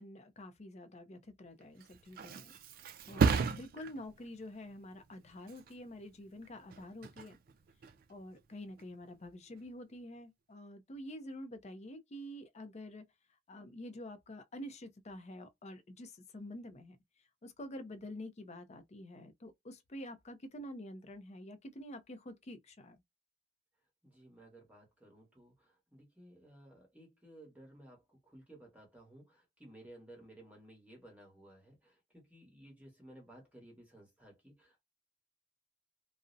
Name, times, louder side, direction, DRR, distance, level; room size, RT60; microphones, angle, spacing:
voice 1, 0.0-2.5 2.8-7.4 8.1-13.0 13.5-17.0 17.4-23.0, left 1 dB, 35° left, 0.5 m, -48 dB
Thump thud, 1.6-9.1 9.5-9.9, right 5 dB, 50° right, 0.3 m, -37 dB
voice 2, 24.0-34.8, right 1 dB, 10° right, 1.0 m, -57 dB
2.5 x 2.0 x 2.5 m
head